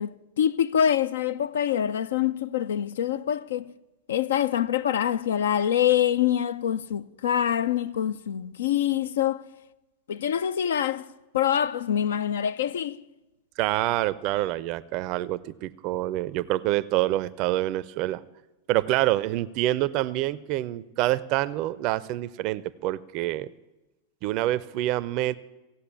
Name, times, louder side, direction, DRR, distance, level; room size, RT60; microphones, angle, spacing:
voice 1, 0.0-3.7 4.1-9.4 10.1-11.1 11.3-13.0, left 10 dB, 60° left, 0.5 m, -25 dB
voice 2, 13.6-18.2 18.7-23.5 24.2-25.4, right 16 dB, 40° right, 0.5 m, -26 dB
16.0 x 8.2 x 9.6 m
figure-of-eight pair, 90°, 0 cm